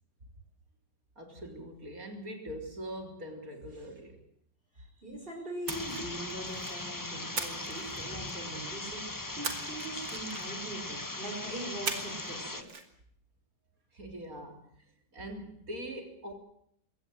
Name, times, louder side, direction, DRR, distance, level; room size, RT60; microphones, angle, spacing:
voice 1, 1.2-4.2 13.9-14.7 15.1-16.3, equal, 50° right, 4.1 m, -42 dB
voice 2, 4.7-12.7, right 1 dB, 30° right, 5.5 m, -42 dB
sound 1, 5.7-12.6, left 2 dB, 15° left, 1.1 m, -39 dB
Splash splatter, 5.7-6.8 7.4-8.5 9.4-10.7 11.9-12.3 12.6-12.8, right 5 dB, 90° right, 3.2 m, -39 dB
22.5 x 18.0 x 7.7 m
omnidirectional pair, 2.0 m